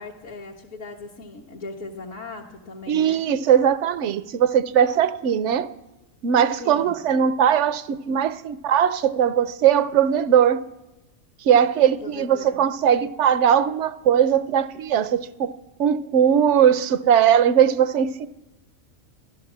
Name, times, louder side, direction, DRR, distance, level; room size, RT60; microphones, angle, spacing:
voice 1, 0.0-3.3 6.6-7.0 12.0-12.6, left 3 dB, 65° left, 1.6 m, -38 dB
voice 2, 2.9-5.7 6.2-10.6 11.4-15.5 15.8-18.3, right 9 dB, 65° right, 0.9 m, -19 dB
13.5 x 12.0 x 7.3 m
omnidirectional pair, 1.4 m